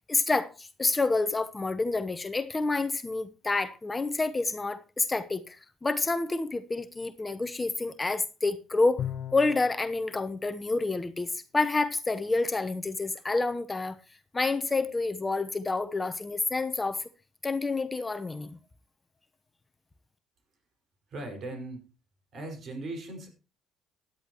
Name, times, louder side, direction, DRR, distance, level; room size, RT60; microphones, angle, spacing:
voice 1, 0.0-5.6 5.8-9.1 9.3-14.0 14.3-17.0 17.4-18.6, left 3 dB, 20° left, 1.0 m, -28 dB
Bowed string instrument, 9.0-9.9, left 10 dB, 60° left, 0.6 m, -35 dB
voice 2, 21.1-21.9 22.3-23.3, right 2 dB, 50° right, 5.4 m, -38 dB
16.0 x 11.0 x 3.0 m
hypercardioid pair, 60°, 0 cm